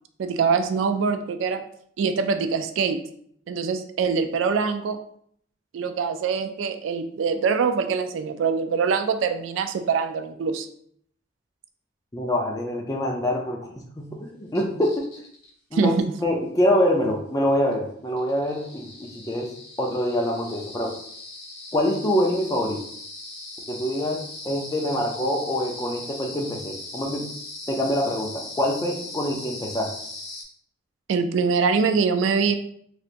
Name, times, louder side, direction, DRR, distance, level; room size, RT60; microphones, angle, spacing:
voice 1, 0.2-1.6 2.0-3.0 3.5-5.0 5.7-10.7 15.7-16.0 31.1-32.6, right 5 dB, 80° right, 8 dB, 0.3 m, -24 dB
voice 2, 12.1-13.6 14.0-15.1 15.7-15.9 16.2-19.5 19.8-20.9 21.7-22.8 23.7-27.2 27.7-29.9, left 1 dB, 20° left, 1 dB, 0.5 m, -25 dB
sound 1, 14.5-15.5 17.7-17.8 18.2-30.4, left 2 dB, 80° left, 0.9 m, -39 dB
3.3 x 2.8 x 2.5 m, 0.64 s
head